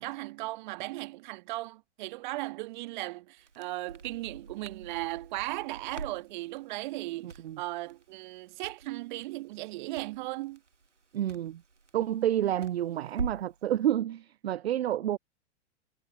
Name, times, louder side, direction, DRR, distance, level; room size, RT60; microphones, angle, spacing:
voice 1, 0.0-10.6, right 19 dB, 40° right, 1.5 m, -37 dB
Crackle, 3.4-13.6, right 4 dB, 80° right, 1.9 m, -45 dB
voice 2, 7.2-7.6 11.1-11.6 11.9-15.2, right 12 dB, 60° right, 0.6 m, -29 dB
figure-of-eight pair, 105°, 36 cm